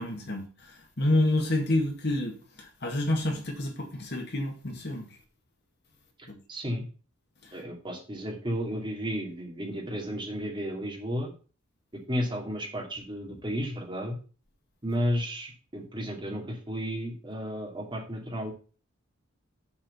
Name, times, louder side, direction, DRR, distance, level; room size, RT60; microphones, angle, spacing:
voice 1, 0.0-5.1 6.3-6.4 7.4-7.6, left 1 dB, 55° left, 2.0 m, -29 dB
voice 2, 6.5-6.8 7.5-11.3 12.1-14.2 14.8-18.5, equal, 25° right, 2.7 m, -33 dB
7.3 x 4.9 x 6.8 m
head